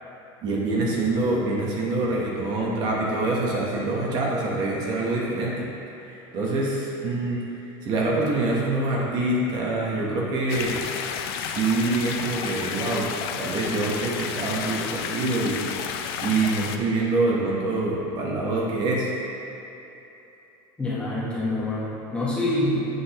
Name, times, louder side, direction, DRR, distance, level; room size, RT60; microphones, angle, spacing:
voice 1, 0.4-5.6 6.0-10.7 11.4-15.6 16.2-19.1, right 2 dB, 35° right, -4 dB, 1.0 m, -25 dB
sound 1, 10.5-16.8, left 7 dB, 90° left, 0.5 m, -31 dB
voice 2, 20.8-22.9, left 1 dB, 10° left, -8 dB, 1.0 m, -26 dB
7.9 x 6.1 x 2.9 m, 3.0 s
cardioid pair, 170°, 12 cm